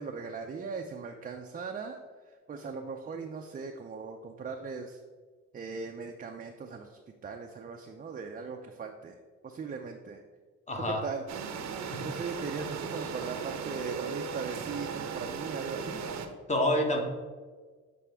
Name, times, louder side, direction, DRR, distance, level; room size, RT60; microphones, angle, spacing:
voice 1, 0.0-2.0 2.5-5.0 5.5-9.1 9.4-10.2 11.0-11.2 12.0-16.0, right 5 dB, 30° right, 3 dB, 0.5 m, -39 dB
voice 2, 10.7-11.1 11.9-12.1 12.9-13.1 16.5-17.0, left 1 dB, 25° left, 3 dB, 1.1 m, -28 dB
sound 1, 11.3-16.3, right 6 dB, 65° right, 0.7 m, -37 dB
7.2 x 4.2 x 3.5 m, 1.5 s
cardioid pair, 90°, 30 cm